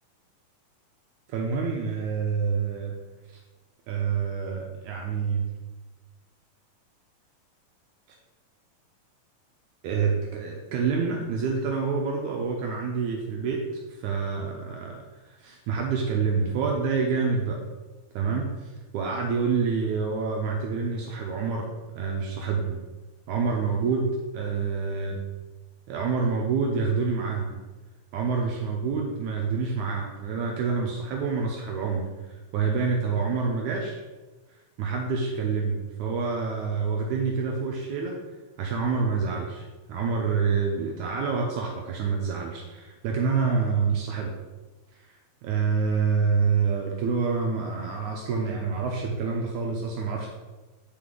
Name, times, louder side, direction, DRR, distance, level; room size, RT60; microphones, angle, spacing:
voice 1, 1.3-3.0 3.9-5.5 9.8-13.6 14.0-17.6 18.1-21.7 22.0-22.8 23.3-25.2 25.9-27.6 28.1-34.0 34.8-38.2 38.6-44.3 45.4-50.3, right 5 dB, 80° right, 0 dB, 1.8 m, -27 dB
9.3 x 3.8 x 3.7 m, 1.2 s
omnidirectional pair, 4.1 m